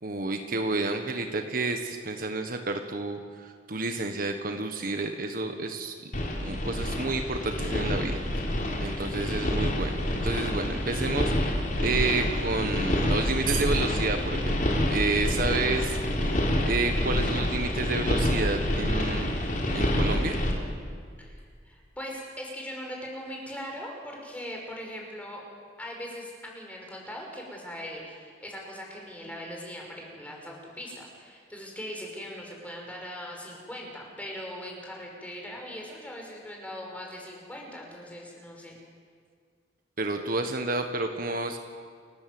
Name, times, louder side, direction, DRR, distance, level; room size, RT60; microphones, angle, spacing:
voice 1, 0.0-3.2 3.7-5.9 6.4-8.2 8.8-16.0 16.7-19.4 19.7-20.4 40.0-41.6, right 3 dB, 55° right, 5 dB, 1.5 m, -30 dB
sound 1, 6.1-20.5, left 1 dB, 50° left, 4.2 m, -27 dB
voice 2, 21.2-25.4 25.8-38.8, equal, 10° left, -1 dB, 5.9 m, -40 dB
29.5 x 17.0 x 7.9 m, 2.1 s
head